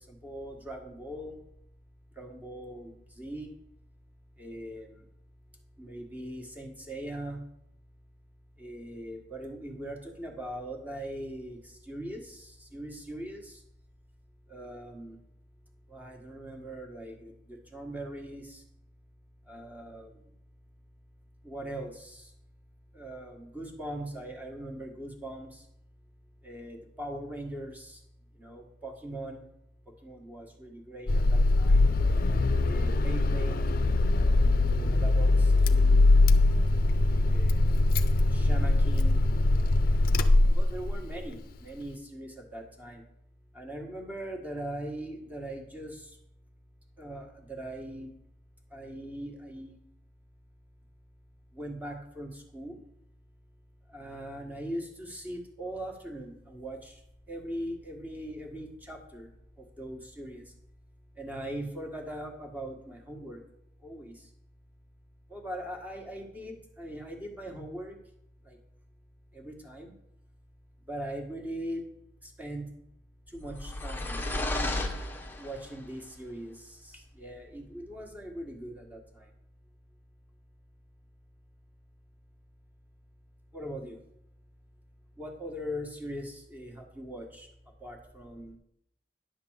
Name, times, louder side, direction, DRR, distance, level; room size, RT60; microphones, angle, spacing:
voice 1, 0.1-1.4 2.2-3.5 4.4-5.0 5.8-7.4 8.6-13.6 14.5-15.2 15.9-18.6 19.5-20.2 21.4-22.3 22.9-25.6 26.4-28.0 28.4-29.4 30.0-31.9 32.6-33.6 34.1-36.1 37.3-37.9 38.3-39.2 40.5-43.0 43.5-46.1 47.0-48.1 48.7-49.8 51.5-52.8 53.9-57.0 57.3-59.3 59.6-60.4 61.2-63.4 63.8-64.2 65.3-68.0 68.4-68.6 69.3-69.9 70.9-71.8 72.2-72.7 73.3-74.3 75.4-79.3 83.5-84.0 85.2-87.5 87.8-88.6, right 1 dB, 10° right, 2 dB, 1.5 m, -40 dB
Car / Engine starting, 31.1-41.1, left 2 dB, 55° left, 0.6 m, -22 dB
sound 1, 73.3-75.8, left 1 dB, 10° left, 0.9 m, -33 dB
10.0 x 3.9 x 7.3 m, 0.78 s
head